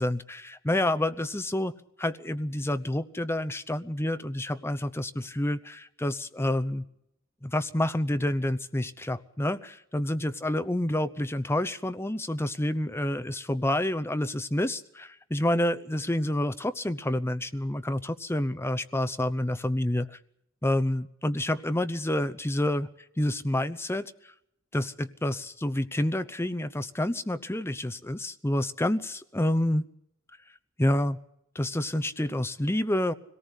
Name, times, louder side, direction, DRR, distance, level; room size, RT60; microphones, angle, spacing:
voice 1, 0.0-1.7 2.0-6.8 7.4-20.2 20.6-22.9 23.2-24.3 24.7-29.8 30.8-31.2 31.5-33.1, left 1 dB, 10° left, 10 dB, 0.8 m, -28 dB
24.5 x 18.0 x 8.2 m, 0.77 s
head